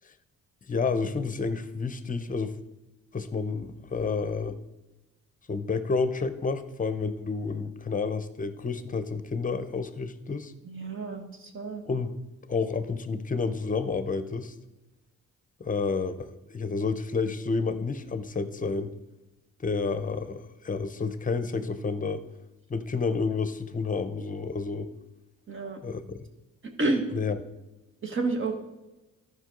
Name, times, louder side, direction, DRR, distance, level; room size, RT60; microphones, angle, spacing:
voice 1, 0.7-2.5 3.1-4.6 5.5-10.5 11.9-12.2 12.5-14.5 15.6-18.9 19.6-22.2 22.7-24.9 25.8-26.2 27.1-27.4, left 4 dB, 25° left, 11 dB, 0.8 m, -30 dB
voice 2, 10.6-11.8 25.5-25.8 26.8-27.0 28.0-28.5, right 3 dB, 40° right, 4 dB, 1.7 m, -29 dB
13.5 x 5.5 x 3.8 m, 1.1 s
cardioid pair, 90°, 30 cm